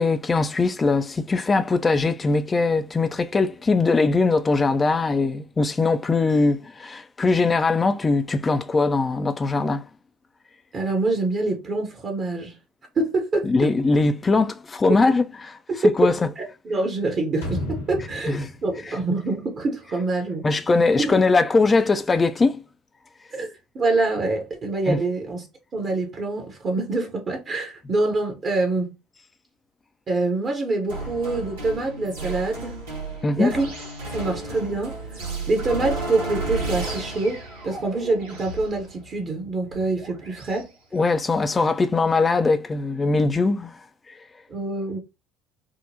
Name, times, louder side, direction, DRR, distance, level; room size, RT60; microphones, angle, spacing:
voice 1, 0.0-9.8 13.4-15.6 16.0-16.2 18.3-18.5 20.4-22.6 24.9-25.0 33.2-33.5 40.9-43.8 44.1-44.2, left 3 dB, 25° left, 0.4 m, -21 dB
voice 2, 10.7-12.6 13.0-13.5 16.4-20.5 21.0-21.2 23.3-25.4 25.7-28.9 30.1-32.7 33.4-33.7 34.1-35.2 35.5-40.7 44.5-45.0, right 2 dB, 40° right, 0.8 m, -25 dB
sound 1, 17.4-20.2 20.5-20.6, left 1 dB, 80° left, 1.0 m, -34 dB
sound 2, 30.9-40.6, right 2 dB, 80° right, 1.4 m, -33 dB
3.6 x 2.0 x 2.7 m
figure-of-eight pair, 60°, 0 cm